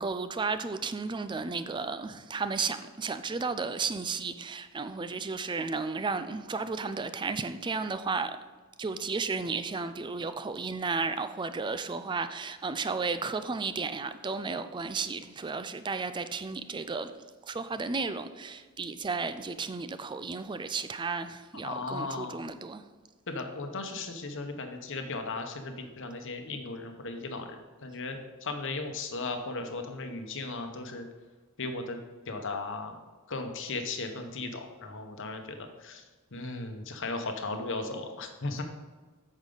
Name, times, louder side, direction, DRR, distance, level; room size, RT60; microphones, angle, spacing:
voice 1, 0.0-8.4 8.8-17.1 17.5-22.8, right 4 dB, 20° right, 0.4 m, -33 dB
voice 2, 21.6-22.4 23.3-31.1 31.6-32.0 32.3-33.0 33.3-36.0 36.3-38.6, left 3 dB, 60° left, 1.0 m, -36 dB
8.6 x 6.4 x 3.9 m
head